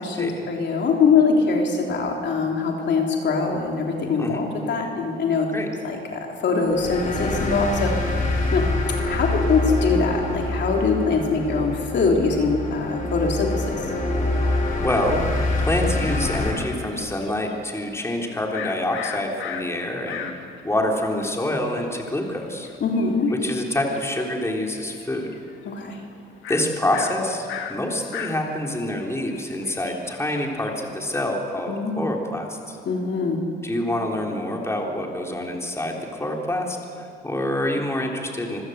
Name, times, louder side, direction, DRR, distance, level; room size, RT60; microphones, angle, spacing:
voice 1, 0.0-5.5 5.8-7.9 8.5-8.7 9.1-13.8 22.8-23.3 25.6-26.0 31.7-32.1 32.8-33.5, left 4 dB, 60° left, 1 dB, 3.3 m, -23 dB
sound 1, 6.7-16.5, left 2 dB, 40° left, 5.2 m, -25 dB
voice 2, 14.8-15.3 15.6-22.7 23.4-25.3 26.5-32.8 33.6-38.6, left 1 dB, 15° left, 0 dB, 3.5 m, -26 dB
sound 2, 16.5-20.6 21.1-21.2 21.3-24.5 24.8-25.6 25.9-26.0 26.4-31.1, left 8 dB, 85° left, 1.8 m, -37 dB
26.5 x 15.0 x 8.0 m, 2.5 s
cardioid pair, 90°, 20 cm